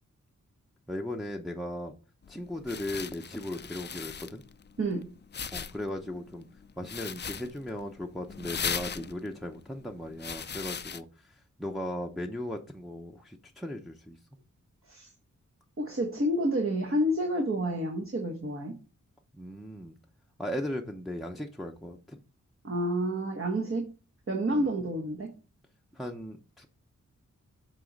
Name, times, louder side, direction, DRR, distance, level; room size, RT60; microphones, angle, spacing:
voice 1, 0.9-1.9 2.3-4.4 5.5-6.5 6.8-14.2 19.3-20.0 20.4-22.2 24.5-24.7 25.9-26.7, left 1 dB, ahead, 1 dB, 0.7 m, -37 dB
sound 1, 2.2-11.0, left 7 dB, 35° left, 0.4 m, -39 dB
voice 2, 4.8-5.1 14.8-15.1 15.8-18.8 22.6-23.9 24.3-25.3, right 1 dB, 45° right, 2 dB, 1.2 m, -29 dB
7.5 x 3.1 x 5.2 m, 0.35 s
cardioid pair, 60°, 30 cm